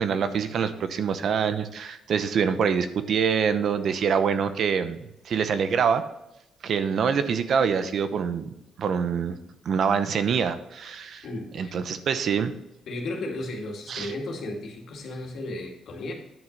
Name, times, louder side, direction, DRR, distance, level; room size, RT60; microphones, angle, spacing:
voice 1, 0.0-5.0 5.2-6.0 6.6-8.5 8.8-9.4 9.6-11.2 11.5-12.5 13.9-14.1, right 6 dB, 60° right, 11 dB, 0.8 m, -25 dB
voice 2, 11.2-11.8 12.9-16.1, left 2 dB, 65° left, 1 dB, 2.3 m, -34 dB
10.5 x 6.2 x 4.0 m, 0.88 s
cardioid pair, 90°, 0 cm